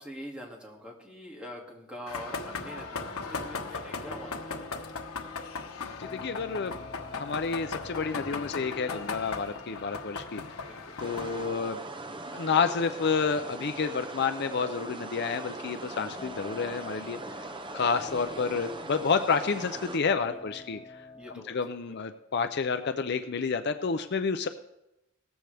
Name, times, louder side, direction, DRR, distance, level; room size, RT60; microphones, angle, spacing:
voice 1, 0.0-5.0 10.3-11.4 20.2-20.4 21.1-22.1, equal, 5° right, -2 dB, 2.3 m, -45 dB
sound 1, 2.1-11.5, left 4 dB, 85° left, 1.2 m, -38 dB
sound 2, 2.3-21.4, left 3 dB, 20° left, 1.0 m, -50 dB
voice 2, 6.0-10.4 11.0-11.8 12.3-17.4 17.7-21.1 21.5-24.5, left 5 dB, 50° left, 9 dB, 0.5 m, -30 dB
sound 3, 11.0-20.0, right 2 dB, 20° right, 0.6 m, -41 dB
17.5 x 14.0 x 3.5 m, 0.93 s
head